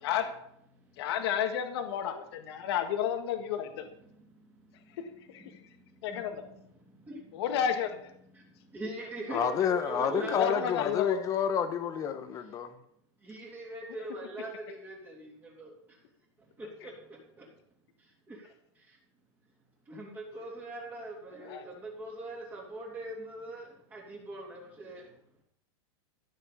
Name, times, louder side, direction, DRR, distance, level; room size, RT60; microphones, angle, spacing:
voice 1, 1.0-3.9 5.3-5.6 6.0-6.4 7.3-8.1 10.2-11.2 21.4-21.7, left 9 dB, 60° left, 1.7 m, -31 dB
voice 2, 5.4-5.7 6.1-7.3 8.3-10.7 13.2-15.7 16.6-17.5 18.3-18.4 18.9-19.0 19.9-25.1, right 2 dB, 10° right, 3.0 m, -42 dB
voice 3, 9.3-12.8, left 7 dB, 20° left, 1.3 m, -29 dB
15.0 x 6.6 x 8.5 m
supercardioid pair, 170°, 15 cm